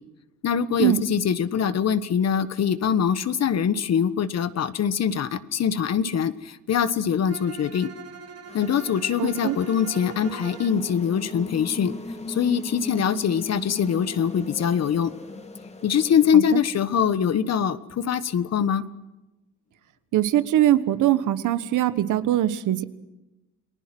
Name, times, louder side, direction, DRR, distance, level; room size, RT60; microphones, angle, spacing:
voice 1, 0.4-7.9 8.5-11.9 12.3-15.1 15.8-18.8, left 8 dB, 60° left, 13 dB, 1.4 m, -23 dB
Bowed string instrument, 7.3-10.8, right 5 dB, 55° right, 2.7 m, -42 dB
sound 1, 8.5-16.3, left 2 dB, 20° left, 2.5 m, -39 dB
voice 2, 9.2-9.6 16.3-16.4 20.1-22.8, right 13 dB, 80° right, 13 dB, 1.4 m, -22 dB
29.5 x 19.5 x 6.1 m, 1.0 s
cardioid pair, 90°, 30 cm